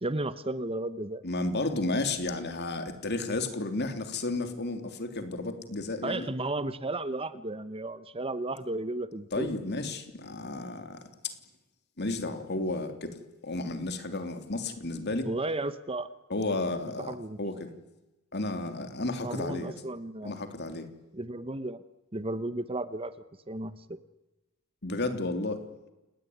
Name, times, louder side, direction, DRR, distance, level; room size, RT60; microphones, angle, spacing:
voice 1, 0.0-1.2 6.0-9.5 15.2-16.1 17.1-17.4 19.2-20.3 21.1-21.8 22.1-23.1 23.5-24.0, right 2 dB, 25° right, 13 dB, 1.0 m, -33 dB
voice 2, 1.2-6.3 9.3-11.3 12.0-15.3 16.3-17.7 18.3-19.8 20.2-20.8 24.8-25.6, left 2 dB, 50° left, 8 dB, 3.1 m, -32 dB
29.0 x 19.5 x 9.4 m, 1.0 s
head